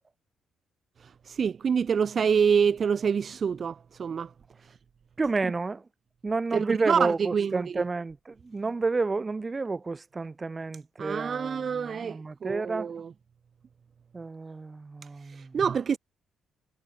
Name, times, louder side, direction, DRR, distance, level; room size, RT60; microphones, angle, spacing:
voice 1, 1.0-4.3 6.5-7.8 11.0-13.1 15.2-16.0, right 6 dB, 45° right, 3.1 m, -27 dB
voice 2, 5.2-5.8 6.2-12.9 14.1-15.6, right 3 dB, 25° right, 7.1 m, -30 dB
cardioid pair, 90°, 0 cm